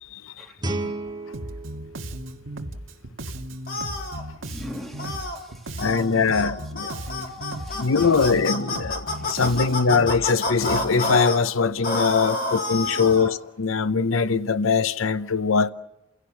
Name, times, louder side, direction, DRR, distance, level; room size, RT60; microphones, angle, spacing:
voice 1, 0.0-0.3 5.8-7.2 7.7-15.7, left 5 dB, 85° left, 0.7 m, -22 dB
Guitar, 0.6-3.4, right 2 dB, 20° right, 2.3 m, -34 dB
Bass guitar, 1.3-11.2, right 1 dB, 70° right, 1.7 m, -36 dB
sound 1, 3.7-4.2 5.0-5.4 5.8-6.0 6.3-6.5 6.8-11.4 11.8-13.3, left 2 dB, 45° left, 3.9 m, -28 dB
voice 2, 4.4-5.9 7.5-7.9 9.0-9.6 12.3-12.5, equal, ahead, 3.0 m, -42 dB
30.0 x 16.5 x 7.2 m
head